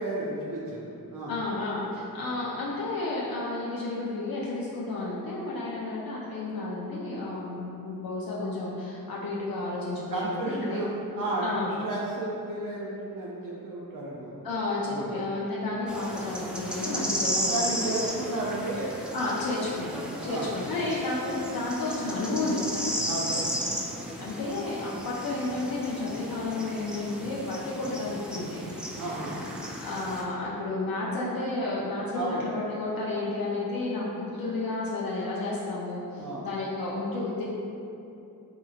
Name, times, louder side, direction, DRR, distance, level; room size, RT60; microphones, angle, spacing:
voice 1, 0.0-1.4 10.1-10.9 11.1-11.5 11.8-14.3 14.9-15.2 17.3-18.9 20.2-20.6 23.0-23.5 29.0-29.5 32.1-32.5 36.2-36.5, right 2 dB, 60° right, -5 dB, 0.4 m, -33 dB
voice 2, 1.3-10.8 11.4-11.7 14.4-17.8 19.1-23.0 24.2-28.7 29.8-37.4, left 2 dB, 70° left, -6 dB, 0.5 m, -31 dB
sound 1, 15.9-30.2, equal, 5° right, 0.3 m, -34 dB
2.8 x 2.7 x 2.3 m, 2.7 s
cardioid pair, 50°, 37 cm